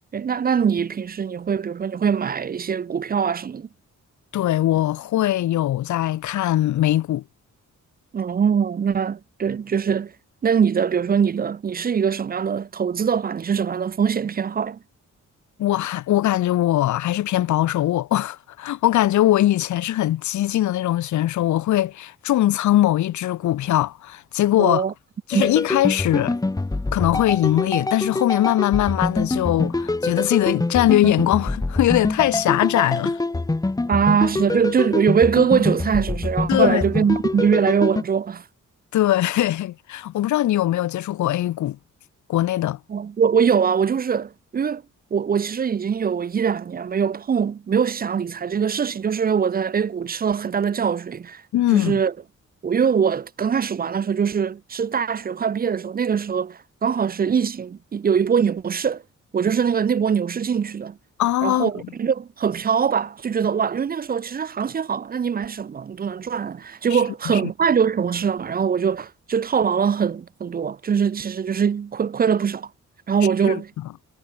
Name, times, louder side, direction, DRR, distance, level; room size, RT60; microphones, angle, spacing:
voice 1, 0.1-3.7 8.1-10.1 10.4-14.8 24.6-24.9 25.3-25.5 33.9-38.4 42.9-44.8 45.1-51.4 51.7-52.1 52.6-59.0 59.3-61.0 61.4-72.7 73.1-73.7, right 7 dB, 30° right, 0.4 m, -22 dB
voice 2, 4.3-7.2 15.6-24.8 25.3-26.4 26.9-33.2 36.5-37.1 38.9-41.8 42.3-42.8 51.5-52.0 61.2-61.7 66.9-67.0 67.3-67.4 73.5-73.6, left 13 dB, 70° left, 0.5 m, -21 dB
sound 1, 25.3-38.0, left 2 dB, 10° left, 0.9 m, -25 dB
wide cardioid pair, 160°, 30 cm